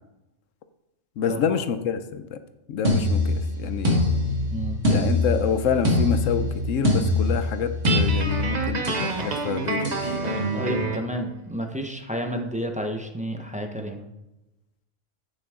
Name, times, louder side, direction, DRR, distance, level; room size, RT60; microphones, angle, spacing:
voice 1, 1.2-2.4 2.7-4.0 4.9-10.4, left 7 dB, 85° left, 10 dB, 1.1 m, -27 dB
sound 1, 2.8-9.1 9.8-10.1, left 1 dB, 70° right, 2.3 m, -24 dB
voice 2, 4.5-4.8 10.5-14.0, equal, 5° right, 3 dB, 0.9 m, -31 dB
Guitar, 7.9-11.1, right 3 dB, 40° right, 0.9 m, -28 dB
10.5 x 8.8 x 3.7 m, 0.96 s
omnidirectional pair, 1.3 m